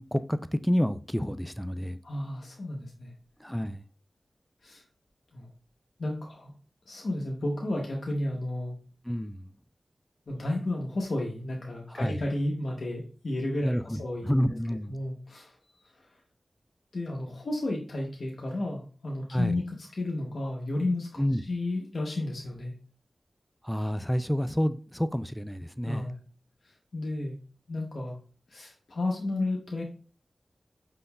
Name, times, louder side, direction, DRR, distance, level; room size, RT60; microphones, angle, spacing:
voice 1, 0.0-2.0 3.4-3.8 9.0-9.5 11.9-12.2 13.6-14.9 19.3-19.6 21.2-21.4 23.6-26.0, equal, 5° left, 0.3 m, -29 dB
voice 2, 2.0-3.1 4.6-4.8 5.3-5.5 6.0-6.5 6.9-8.8 10.3-14.3 14.9-15.5 15.8-16.1 16.9-19.6 19.9-21.2 21.5-22.7 25.8-26.1 26.9-27.3 27.7-28.2 28.5-29.8, left 1 dB, 75° left, 0.8 m, -32 dB
5.1 x 3.7 x 2.3 m
cardioid pair, 40°, 0 cm